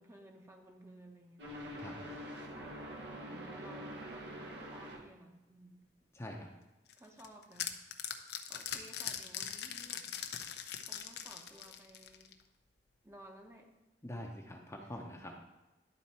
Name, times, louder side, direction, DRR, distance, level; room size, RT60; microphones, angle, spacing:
voice 1, 0.0-1.5 2.9-5.9 7.0-7.7 8.2-10.1 10.9-12.4 13.0-13.7 14.8-15.0, right 1 dB, 15° right, 2 dB, 0.9 m, -56 dB
sound 1, 1.4-5.0, equal, 75° right, 1.4 m, -45 dB
voice 2, 6.2-6.5 14.0-15.3, left 1 dB, 15° left, 1 dB, 0.8 m, -44 dB
sound 2, 6.9-12.4, left 9 dB, 65° left, 0.6 m, -41 dB
11.0 x 4.3 x 4.3 m, 1.0 s
head